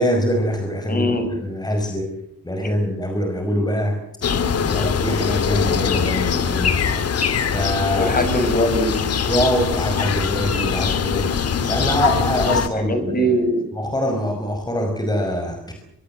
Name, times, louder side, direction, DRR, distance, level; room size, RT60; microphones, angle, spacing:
voice 1, 0.0-1.1 1.4-2.1 2.4-4.0 4.7-6.8 7.5-8.2 9.3-11.3 11.7-13.1 13.7-15.7, equal, 15° left, 4 dB, 5.5 m, -23 dB
voice 2, 0.9-1.2 7.9-9.0 12.7-13.6, equal, 30° left, 8 dB, 7.5 m, -21 dB
sound 1, 4.2-12.7, left 6 dB, 55° left, 2.7 m, -22 dB
25.0 x 22.5 x 7.8 m, 0.73 s
cardioid pair, 90°, 30 cm